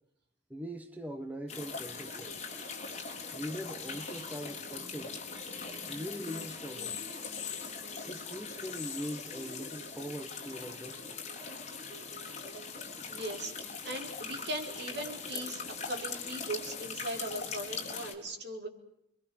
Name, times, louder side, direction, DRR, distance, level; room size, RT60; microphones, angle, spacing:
voice 1, 0.5-2.4 2.9-5.2 5.9-7.1 8.1-11.2, equal, 10° right, 1.5 m, -42 dB
sound 1, 1.5-18.1, left 5 dB, 35° left, 3.9 m, -41 dB
sound 2, 1.5-16.5, right 1 dB, 25° right, 2.3 m, -54 dB
voice 2, 13.1-13.5 13.8-15.6 15.9-18.7, right 1 dB, 60° right, 5.0 m, -39 dB
29.0 x 23.0 x 7.2 m
head